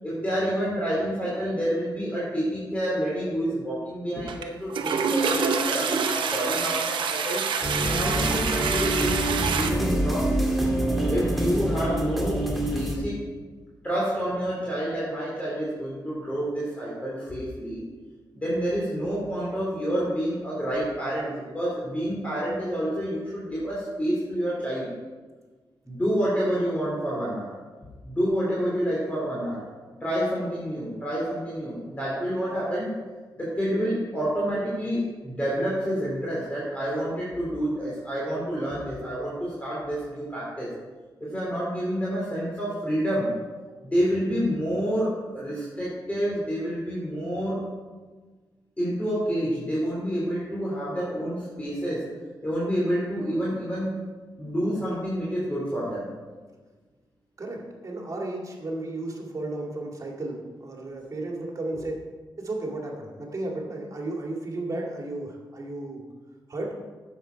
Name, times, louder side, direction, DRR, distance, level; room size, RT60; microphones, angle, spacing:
voice 1, 0.0-7.5 7.8-10.3 11.0-13.2 13.8-17.8 18.3-24.9 25.9-27.5 28.0-29.6 30.0-32.9 33.4-40.7 41.2-43.3 43.8-47.6 48.8-52.0 52.4-54.0 54.4-56.1, equal, 15° left, -6 dB, 2.9 m, -28 dB
Toilet flush, 4.3-4.4 4.7-9.7, right 6 dB, 85° right, 0.8 m, -26 dB
sound 1, 7.6-13.0, right 1 dB, ahead, 2.0 m, -26 dB
voice 2, 57.4-62.0 62.4-66.0 66.5-66.8, right 2 dB, 45° right, -1 dB, 2.1 m, -33 dB
10.5 x 7.4 x 4.5 m, 1.4 s
cardioid pair, 80°, 8 cm